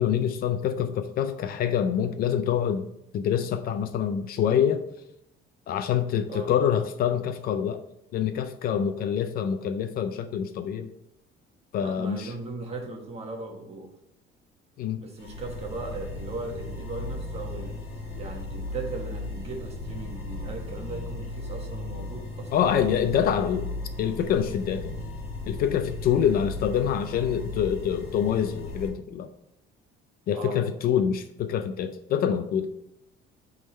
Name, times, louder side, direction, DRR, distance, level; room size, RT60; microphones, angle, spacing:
voice 1, 0.0-2.9 3.1-4.8 5.7-7.8 8.1-10.9 11.7-12.3 14.8-15.0 22.5-23.7 24.0-24.9 25.4-29.3 30.3-32.7, left 8 dB, 50° left, 9 dB, 0.5 m, -26 dB
voice 2, 11.8-13.9 15.0-17.8 18.2-22.7 30.3-30.6, right 3 dB, 30° right, 2 dB, 1.2 m, -38 dB
sound 1, 15.2-28.9, left 2 dB, 30° left, 2.2 m, -36 dB
8.4 x 3.7 x 4.2 m, 0.80 s
cardioid pair, 170°, 20 cm